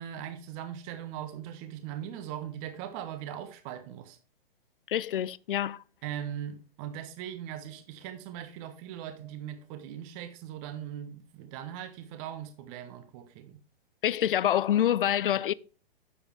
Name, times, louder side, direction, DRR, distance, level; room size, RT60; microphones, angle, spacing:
voice 1, 0.0-4.2 6.0-13.6, right 10 dB, 35° right, 1.3 m, -40 dB
voice 2, 4.9-5.8 14.0-15.5, left 11 dB, 65° left, 0.5 m, -26 dB
10.0 x 7.0 x 3.2 m
figure-of-eight pair, 110°, 29 cm